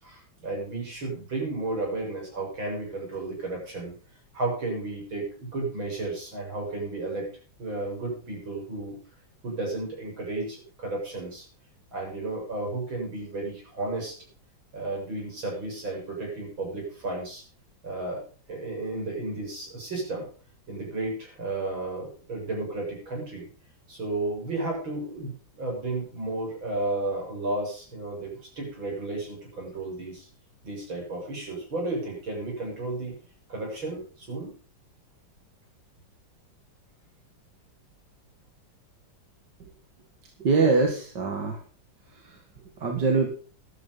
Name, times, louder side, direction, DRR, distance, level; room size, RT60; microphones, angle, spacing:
voice 1, 0.0-3.9 4.3-7.2 7.6-9.0 9.4-11.5 11.9-14.2 14.7-17.4 17.8-18.2 18.5-20.3 20.7-23.5 23.9-30.3 30.6-33.2 33.5-34.5, right 2 dB, 80° right, -1 dB, 8.3 m, -33 dB
voice 2, 40.4-41.6 42.1-42.4 42.8-43.3, right 4 dB, 60° right, 2 dB, 2.6 m, -24 dB
13.0 x 12.5 x 5.5 m, 0.40 s
omnidirectional pair, 2.2 m